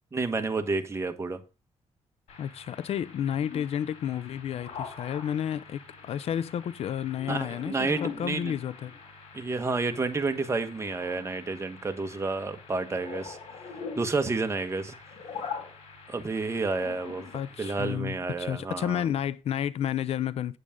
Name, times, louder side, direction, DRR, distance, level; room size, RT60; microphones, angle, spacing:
voice 1, 0.1-1.4 7.3-8.5 9.3-13.4 14.0-14.9 16.1-17.3 17.6-19.1, right 3 dB, 25° right, 1.2 m, -30 dB
sound 1, 2.3-17.9, left 6 dB, 85° left, 2.9 m, -44 dB
voice 2, 2.4-8.9 17.3-20.6, left 9 dB, 70° left, 0.5 m, -31 dB
8.7 x 8.3 x 3.7 m
cardioid pair, 105°, 11 cm